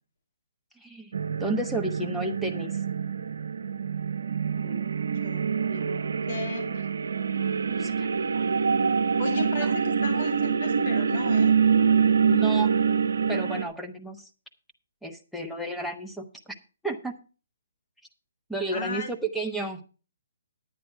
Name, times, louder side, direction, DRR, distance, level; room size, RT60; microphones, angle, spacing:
voice 1, 0.8-2.8 4.6-4.9 7.8-8.1 8.3-8.4 9.6-9.7 12.3-12.7 13.3-14.3 15.0-16.3 16.8-17.2 18.5-19.8, right 2 dB, ahead, 4 dB, 1.0 m, -32 dB
sound 1, 1.1-13.6, right 6 dB, 75° right, 0.7 m, -25 dB
voice 2, 5.2-6.0 6.3-6.9 9.2-11.5 18.7-19.1, left 4 dB, 55° left, 5 dB, 2.5 m, -35 dB
10.0 x 9.4 x 4.6 m, 0.36 s
hypercardioid pair, 150°, 0 cm